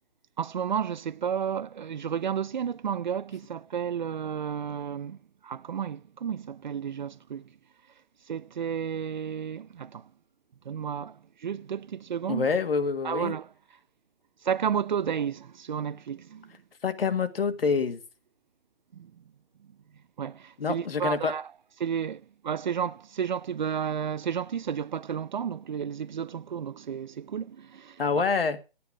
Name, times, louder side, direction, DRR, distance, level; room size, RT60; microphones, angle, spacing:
voice 1, 0.4-5.2 5.4-7.5 8.3-10.0 10.7-12.5 13.0-13.5 14.4-16.5 18.9-19.1 20.2-21.5 21.8-28.0, right 8 dB, 50° right, 0.5 m, -32 dB
voice 2, 12.3-13.3 16.8-18.0 20.6-21.3 28.0-28.6, left 5 dB, 70° left, 1.8 m, -26 dB
11.5 x 9.5 x 4.8 m
hypercardioid pair, 155°, 30 cm